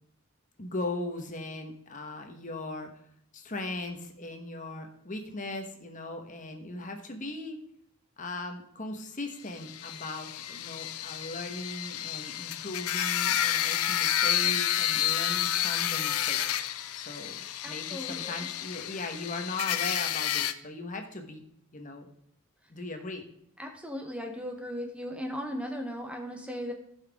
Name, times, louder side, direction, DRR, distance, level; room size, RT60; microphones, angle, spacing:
voice 1, 0.6-3.0 3.3-7.6 8.2-16.4 16.9-21.4 21.7-22.1 22.7-23.2, left 2 dB, 35° left, 5 dB, 1.2 m, -38 dB
sound 1, 9.6-20.5, left 11 dB, 80° left, 0.6 m, -30 dB
voice 2, 17.6-18.4 23.6-26.7, equal, 5° right, 3 dB, 0.9 m, -37 dB
16.0 x 5.8 x 3.5 m, 0.73 s
head